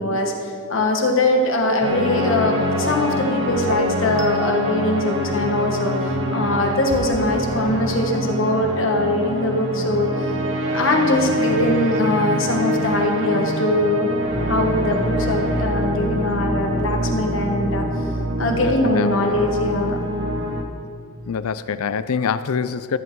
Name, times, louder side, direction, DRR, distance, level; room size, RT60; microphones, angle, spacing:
voice 1, 0.0-10.3 10.7-14.1 14.5-17.8 18.4-19.9, left 1 dB, 60° left, 2 dB, 1.3 m, -22 dB
sound 1, 1.8-20.6, equal, 55° right, 1.4 m, -25 dB
sound 2, 4.2-15.1, right 2 dB, 30° right, 0.7 m, -32 dB
voice 2, 18.5-19.5 21.3-23.0, left 6 dB, 85° left, 14 dB, 0.4 m, -25 dB
13.5 x 7.7 x 4.7 m, 2.4 s
head